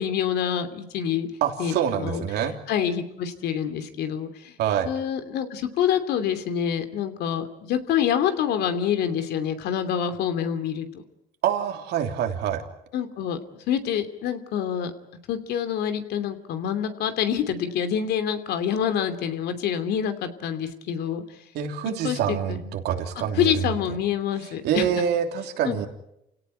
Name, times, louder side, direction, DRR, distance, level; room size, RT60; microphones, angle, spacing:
voice 1, 0.0-1.3 1.6-2.2 2.7-4.5 4.8-10.9 12.9-13.4 13.7-14.9 15.3-21.2 22.0-22.7 23.4-24.8 25.6-25.9, left 8 dB, 75° left, 9 dB, 2.8 m, -26 dB
voice 2, 1.4-2.6 4.6-4.9 11.4-12.6 21.5-24.0 24.6-25.9, right 9 dB, 75° right, 5 dB, 3.3 m, -26 dB
29.0 x 17.5 x 9.2 m, 0.84 s
cardioid pair, 110°, 17 cm